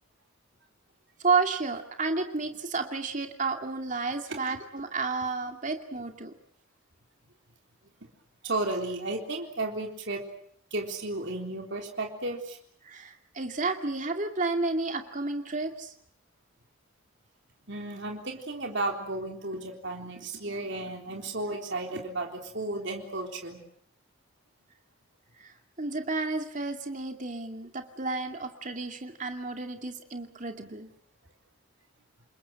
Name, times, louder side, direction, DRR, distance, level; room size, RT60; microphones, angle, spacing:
voice 1, 1.2-6.3 12.8-15.9 25.4-25.5 25.8-30.9, right 3 dB, 35° right, 5 dB, 2.5 m, -31 dB
voice 2, 8.4-10.2 10.7-12.6 17.7-23.6, right 2 dB, 55° right, 2 dB, 3.8 m, -33 dB
28.5 x 21.5 x 7.7 m, 0.65 s
head